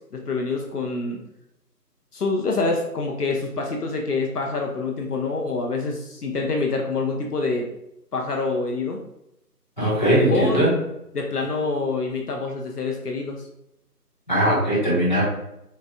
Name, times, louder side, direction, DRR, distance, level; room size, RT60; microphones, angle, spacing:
voice 1, 0.1-1.2 2.1-7.7 8.1-9.0 10.3-10.6 11.1-13.5, left 3 dB, 70° left, 1 dB, 0.6 m, -26 dB
voice 2, 9.8-10.7 14.3-15.3, right 1 dB, 30° left, -8 dB, 0.8 m, -20 dB
4.1 x 2.2 x 2.3 m, 0.83 s
figure-of-eight pair, 170°, 48 cm